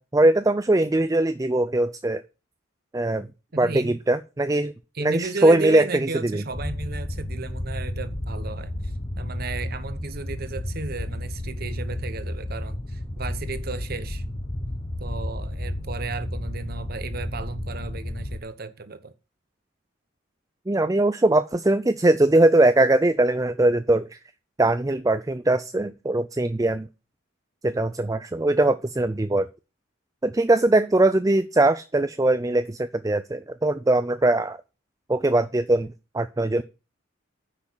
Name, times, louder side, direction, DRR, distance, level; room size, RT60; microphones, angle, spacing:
voice 1, 0.0-2.2 2.9-3.3 3.6-4.7 5.0-6.4 20.7-24.2 24.6-26.9 27.6-29.5 30.2-34.6 35.1-36.6, right 2 dB, 15° right, 0.4 m, -21 dB
voice 2, 3.5-4.0 4.9-14.2 15.0-19.1, right 3 dB, 45° right, 0.9 m, -34 dB
sound 1, 6.5-18.4, left 1 dB, 25° left, 0.9 m, -32 dB
9.9 x 6.1 x 6.2 m
head